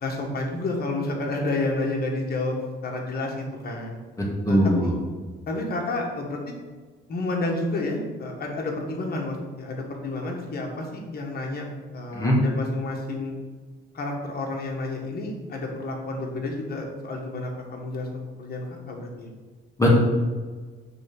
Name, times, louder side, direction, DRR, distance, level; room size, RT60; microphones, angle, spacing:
voice 1, 0.0-2.6 2.8-4.0 4.5-4.9 5.5-6.4 7.1-11.6 11.9-13.3 13.9-18.1 18.4-19.3, left 2 dB, 50° left, 0 dB, 1.7 m, -30 dB
voice 2, 4.2-4.9 12.1-12.4 19.8-20.0, equal, 15° left, -4 dB, 2.0 m, -20 dB
6.6 x 3.6 x 6.1 m, 1.4 s
cardioid pair, 90°, 20 cm